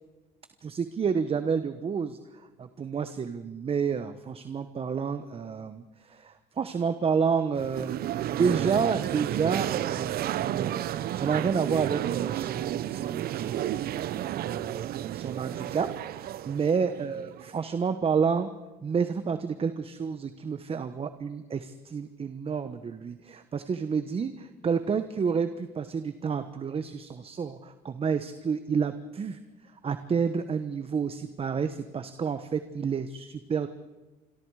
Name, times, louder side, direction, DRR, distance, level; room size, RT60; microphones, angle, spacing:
voice 1, 0.6-2.2 2.6-13.9 14.4-15.9 16.1-18.5 18.8-29.4 29.8-33.7, right 6 dB, 35° right, 10 dB, 1.2 m, -30 dB
sound 1, 7.6-17.6, right 12 dB, 65° right, 0.8 m, -32 dB
27.0 x 23.0 x 4.9 m, 1.2 s
cardioid pair, 110°, 17 cm